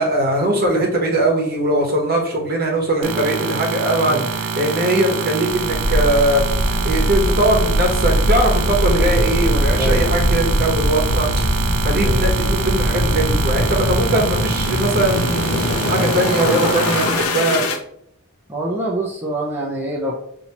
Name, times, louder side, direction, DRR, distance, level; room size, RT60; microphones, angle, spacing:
voice 1, 0.0-17.6, right 1 dB, 45° right, 0 dB, 1.0 m, -20 dB
sound 1, 3.0-17.2, right 5 dB, 70° right, 0.5 m, -25 dB
sound 2, 5.6-17.8, left 1 dB, 85° left, 0.6 m, -21 dB
voice 2, 9.7-10.4 12.0-12.3 14.1-14.2 18.5-20.1, right 1 dB, 10° right, -4 dB, 0.6 m, -25 dB
5.6 x 2.7 x 2.9 m, 0.70 s
head